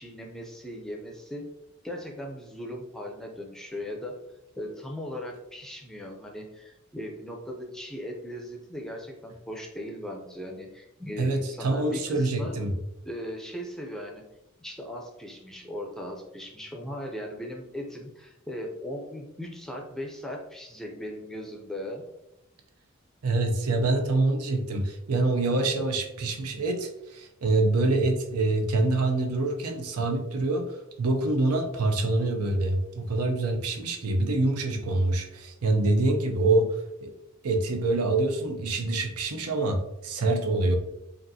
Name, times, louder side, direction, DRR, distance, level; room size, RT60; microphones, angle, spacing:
voice 1, 0.0-1.5 1.8-4.2 4.6-12.5 13.0-14.2 14.6-22.0, equal, ahead, 1 dB, 0.5 m, -38 dB
voice 2, 11.2-12.7 23.2-37.1 37.4-40.8, right 2 dB, 80° right, 4 dB, 0.6 m, -26 dB
5.2 x 2.5 x 2.7 m, 0.90 s
head